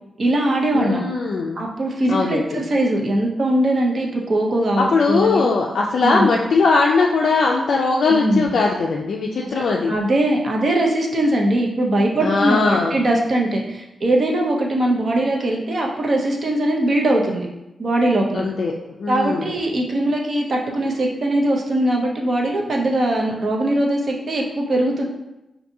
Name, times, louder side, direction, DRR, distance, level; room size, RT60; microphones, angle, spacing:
voice 1, 0.2-1.0 1.6-5.5 6.0-6.3 8.1-8.5 9.5-17.5 17.8-18.4 19.1-25.0, right 1 dB, 40° right, 0 dB, 0.6 m, -21 dB
voice 2, 0.7-1.6 2.1-2.6 4.8-9.9 12.2-13.0 18.3-18.7 19.0-19.5, left 4 dB, 65° left, -1 dB, 0.3 m, -19 dB
4.8 x 2.6 x 2.6 m, 0.92 s
wide cardioid pair, 165°, 0 cm